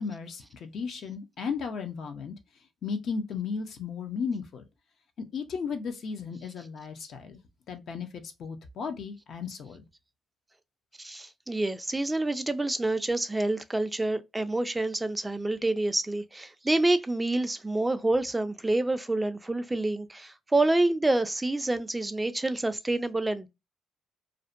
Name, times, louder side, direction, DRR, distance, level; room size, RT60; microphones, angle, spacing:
voice 1, 0.0-2.3 2.8-4.6 5.2-7.4 7.7-9.8, left 5 dB, 65° left, 0.6 m, -35 dB
voice 2, 11.0-23.5, right 2 dB, 15° right, 0.3 m, -27 dB
2.5 x 2.1 x 2.4 m
cardioid pair, 90°, 0 cm